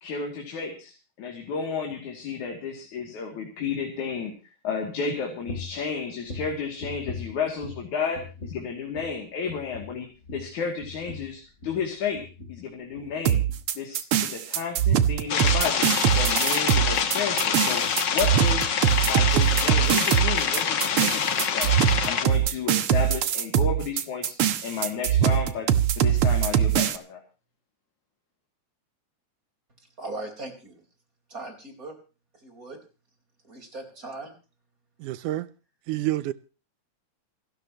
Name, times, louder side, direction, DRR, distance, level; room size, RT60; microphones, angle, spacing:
voice 1, 0.0-4.3 4.6-10.1 10.3-12.2 12.5-13.4 13.8-17.8 18.1-18.7 19.0-21.7 22.0-24.4 24.6-25.7 26.0-27.2, left 5 dB, 70° left, 4.0 m, -32 dB
sound 1, 5.5-5.8 6.2-7.9 8.1-8.7 8.9-9.2 9.5-11.9 12.1-12.6 12.9-13.1 13.5-13.6, left 3 dB, 25° left, 3.6 m, -40 dB
sound 2, 13.3-27.0, right 10 dB, 60° right, 1.6 m, -22 dB
sound 3, 15.3-22.2, left 7 dB, 50° left, 1.4 m, -26 dB
voice 2, 30.0-30.8 31.3-31.9 32.3-32.8 33.4-34.3, right 2 dB, 25° right, 4.7 m, -39 dB
voice 3, 35.0-35.5 35.9-36.3, right 15 dB, 80° right, 2.4 m, -28 dB
27.5 x 13.0 x 3.0 m
omnidirectional pair, 3.6 m